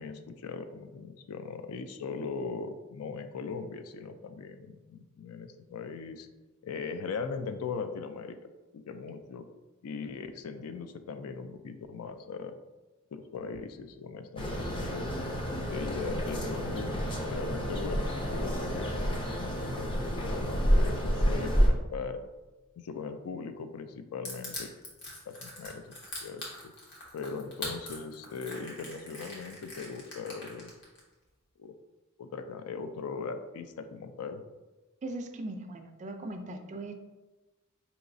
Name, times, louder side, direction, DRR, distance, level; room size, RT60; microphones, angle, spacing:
voice 1, 0.0-6.3 6.6-8.4 8.7-9.5 9.8-12.6 13.1-15.3 15.7-19.2 19.8-20.0 20.2-22.2 22.8-24.7 25.3-26.7 27.1-30.7 31.6-31.7 32.2-34.4, left 5 dB, 70° left, 9 dB, 0.3 m, -39 dB
sound 1, 14.4-21.7, equal, 25° left, 0.5 m, -29 dB
Crushing, 24.2-31.0, left 2 dB, 55° left, 1.1 m, -42 dB
voice 2, 35.0-36.9, right 2 dB, 35° right, 6 dB, 0.3 m, -39 dB
4.7 x 2.9 x 2.6 m, 1.1 s
head